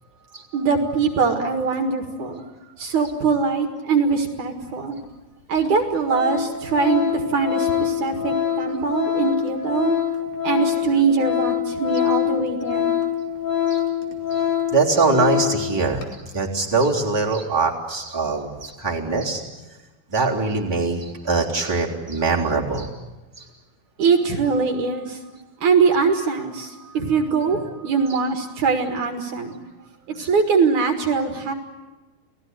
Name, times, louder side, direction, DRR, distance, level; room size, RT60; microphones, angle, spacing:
voice 1, 0.5-2.4 2.8-5.0 5.5-10.0 10.4-12.9 24.0-25.2 25.6-29.5 30.1-31.5, right 5 dB, 60° right, 5 dB, 3.0 m, -22 dB
Organ, 5.0-5.1 5.7-5.8 6.1-15.7 16.0-16.1, left 9 dB, 60° left, 3.8 m, -24 dB
voice 2, 14.7-16.0 16.3-19.4 20.1-22.9 23.4-23.5 24.0-24.1 28.1-28.2 30.2-30.3, right 4 dB, 5° right, -3 dB, 3.0 m, -22 dB
29.5 x 18.5 x 9.6 m, 1.1 s
omnidirectional pair, 4.1 m